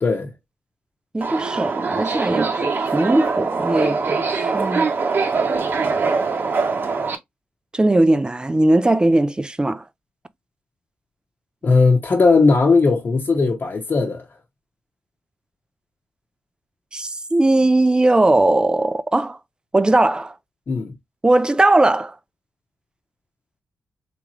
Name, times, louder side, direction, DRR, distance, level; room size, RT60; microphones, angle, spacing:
voice 1, 1.1-4.9 7.7-9.8 16.9-19.4 19.7-20.3 21.2-22.1, right 2 dB, 20° right, 0.5 m, -19 dB
Subway metro underground, 1.2-7.2, right 4 dB, 55° right, 0.8 m, -22 dB
voice 2, 11.6-14.2 20.7-20.9, left 4 dB, 55° left, 1.1 m, -17 dB
3.5 x 2.9 x 3.0 m
supercardioid pair, 50°, 4 cm